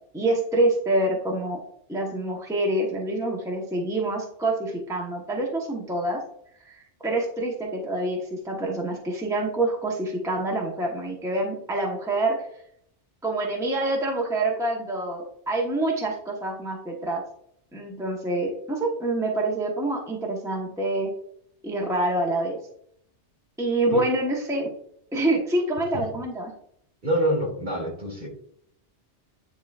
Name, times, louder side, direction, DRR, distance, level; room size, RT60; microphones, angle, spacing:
voice 1, 0.1-1.6 1.9-6.2 6.6-12.5 13.2-17.2 17.7-21.1 21.6-22.6 23.6-24.7 25.1-26.5, right 2 dB, 5° right, -1 dB, 1.0 m, -26 dB
voice 2, 27.0-28.3, equal, 50° right, -2 dB, 2.7 m, -26 dB
9.7 x 4.1 x 2.4 m, 0.67 s
omnidirectional pair, 1.2 m